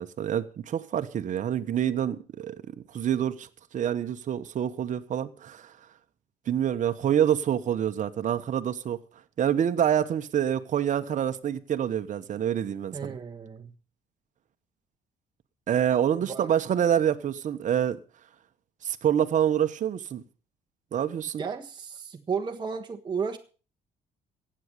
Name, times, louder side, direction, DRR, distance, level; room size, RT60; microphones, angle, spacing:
voice 1, 0.0-3.5 3.7-5.7 6.5-9.0 9.4-13.2 15.7-18.0 18.8-20.2 20.9-21.4, right 9 dB, 50° right, 1.3 m, -27 dB
voice 2, 12.9-13.7 16.2-16.5 21.4-23.4, right 6 dB, 25° right, 1.4 m, -33 dB
15.5 x 9.0 x 6.8 m
cardioid pair, 110°, 17 cm